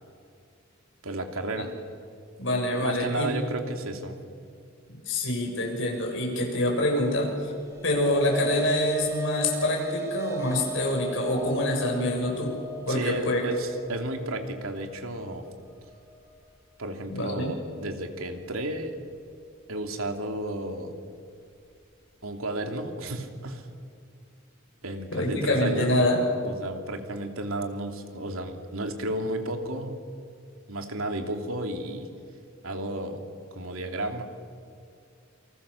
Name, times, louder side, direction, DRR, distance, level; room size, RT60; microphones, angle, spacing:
voice 1, 1.0-1.7 2.8-4.2 12.9-15.4 16.8-18.9 19.7-20.9 22.2-23.6 24.8-25.9 26.4-30.0 30.7-32.1 32.6-33.2 33.5-34.2, right 1 dB, 80° right, 4 dB, 2.8 m, -32 dB
voice 2, 2.4-3.4 5.1-7.5 7.8-12.5 12.9-13.4 17.1-17.5 25.1-26.2, left 1 dB, 60° left, 0 dB, 7.1 m, -26 dB
sound 1, 7.6-16.1, right 2 dB, 15° right, 3.4 m, -37 dB
28.0 x 25.5 x 7.1 m, 2.3 s
head